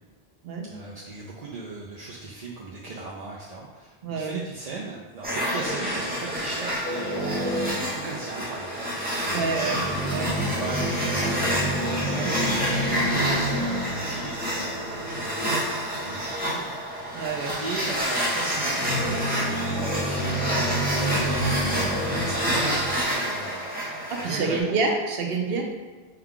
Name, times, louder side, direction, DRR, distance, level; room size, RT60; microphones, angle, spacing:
voice 1, 0.7-9.7 10.4-11.5 12.0-16.7 17.6-23.7 24.2-24.7, right 3 dB, 50° right, -4 dB, 0.5 m, -37 dB
voice 2, 4.0-4.4 9.3-9.8 10.1-10.3 12.1-12.3 17.1-17.5 24.1-25.6, right 4 dB, 70° right, 2 dB, 0.9 m, -27 dB
sound 1, 5.2-24.6, equal, 10° right, 0.8 m, -29 dB
sound 2, 6.8-8.1 9.2-15.4 18.8-23.0, equal, 15° left, 0.4 m, -29 dB
5.7 x 2.3 x 3.6 m, 1.4 s
omnidirectional pair, 1.1 m